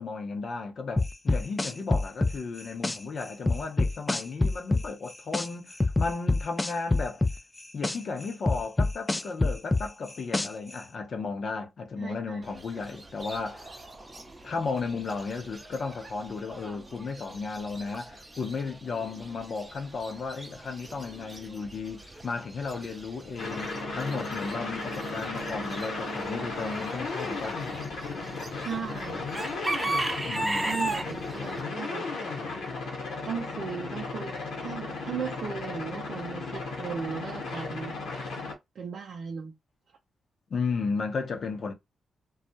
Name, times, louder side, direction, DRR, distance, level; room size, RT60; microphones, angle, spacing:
voice 1, 0.0-7.2 7.7-13.7 14.4-27.6 30.2-30.9 40.5-41.7, left 4 dB, 60° left, 0.6 m, -34 dB
sound 1, 1.0-3.0 3.5-5.5 5.8-8.0 8.5-10.7, left 2 dB, 25° left, 0.3 m, -25 dB
voice 2, 12.0-12.5 28.6-29.3 30.6-32.0 33.2-37.9 38.7-39.5, right 6 dB, 70° right, 0.5 m, -37 dB
Chicken rooster / Bird, 12.4-31.6, right 2 dB, 25° right, 0.6 m, -38 dB
sound 2, 23.4-38.5, left 3 dB, 80° left, 0.9 m, -35 dB
2.3 x 2.0 x 2.6 m
supercardioid pair, 55°, 0 cm